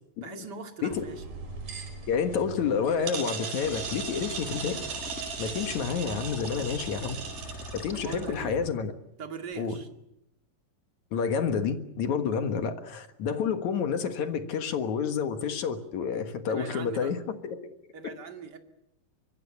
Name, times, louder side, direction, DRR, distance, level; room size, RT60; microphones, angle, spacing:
voice 1, 0.2-1.2 7.9-8.6 9.2-9.9 16.5-17.1 17.9-18.6, right 6 dB, 30° right, 4 dB, 2.3 m, -41 dB
sound 1, 0.9-8.4, right 5 dB, 70° right, 6.8 m, -38 dB
voice 2, 2.1-4.8 5.4-7.2 7.7-8.9 9.6-9.8 11.1-17.6 18.0-18.2, left 6 dB, 60° left, 8 dB, 2.5 m, -29 dB
sound 2, 3.6-8.7, equal, 25° left, 1.8 m, -42 dB
24.5 x 23.0 x 7.1 m, 0.82 s
omnidirectional pair, 4.4 m